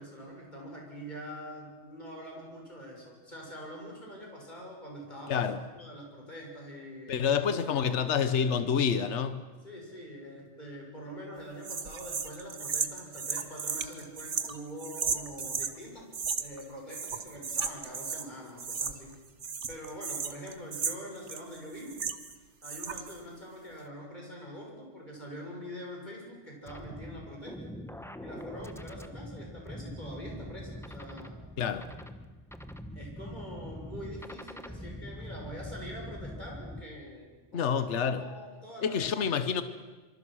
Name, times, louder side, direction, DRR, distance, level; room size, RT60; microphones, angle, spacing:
voice 1, 0.0-5.5 5.7-8.2 9.6-16.1 16.4-19.1 19.7-22.0 22.6-27.7 28.2-31.3 33.0-37.8 38.2-39.6, equal, 40° left, 6.9 m, -44 dB
voice 2, 5.3-5.6 7.1-9.4 31.6-31.9 37.5-38.2 38.8-39.6, left 7 dB, 75° left, 1.3 m, -28 dB
sound 1, 11.6-15.7 16.1-16.6 16.9-18.3 18.6-19.1 19.4-22.3 22.6-23.2, right 6 dB, 75° right, 1.6 m, -35 dB
sound 2, 26.7-36.8, left 1 dB, ahead, 1.0 m, -43 dB
26.5 x 24.5 x 6.3 m
omnidirectional pair, 1.2 m